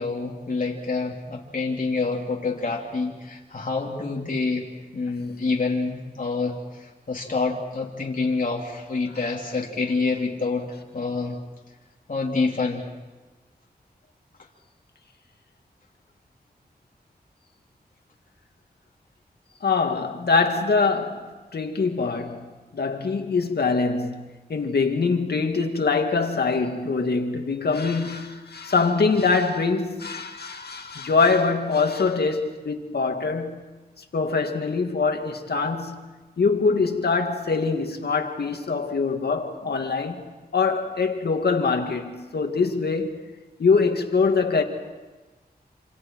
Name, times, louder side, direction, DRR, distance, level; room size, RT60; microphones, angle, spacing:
voice 1, 0.0-4.6 4.9-10.7 10.9-11.4 12.1-12.8, left 3 dB, 55° left, 3.1 m, -27 dB
voice 2, 19.6-21.3 21.5-22.5 22.7-33.6 34.1-36.1 36.4-43.2 43.6-44.6, left 4 dB, 80° left, 2.2 m, -23 dB
27.5 x 27.5 x 4.7 m
wide cardioid pair, 85°, 17 cm